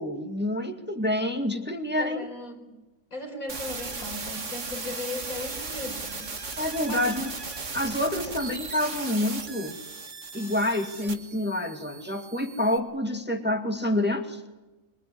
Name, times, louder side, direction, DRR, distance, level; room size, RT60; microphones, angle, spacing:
voice 1, 0.0-2.2 6.6-7.3 7.7-9.8 10.3-14.4, left 1 dB, 5° right, 4 dB, 2.1 m, -28 dB
voice 2, 2.0-2.8 3.1-6.3 6.9-7.1, left 2 dB, 80° left, 3 dB, 5.2 m, -37 dB
sound 1, 3.5-12.8, right 4 dB, 60° right, 2.4 m, -37 dB
26.0 x 22.5 x 9.9 m, 1.1 s
omnidirectional pair, 1.4 m